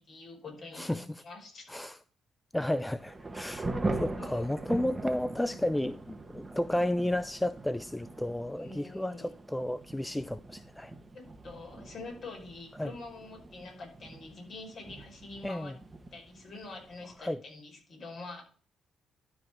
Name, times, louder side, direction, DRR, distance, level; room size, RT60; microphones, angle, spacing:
voice 1, 0.0-1.7 4.2-4.5 8.6-9.3 11.1-15.7 16.1-18.4, left 3 dB, 50° left, 5.5 m, -45 dB
voice 2, 2.5-10.9 12.8-12.9 15.4-15.7 17.2-17.4, left 1 dB, 10° left, 0.4 m, -32 dB
Thunder / Rain, 2.7-17.2, right 2 dB, 20° right, 1.1 m, -41 dB
12.0 x 4.9 x 4.5 m
cardioid pair, 90°, 0 cm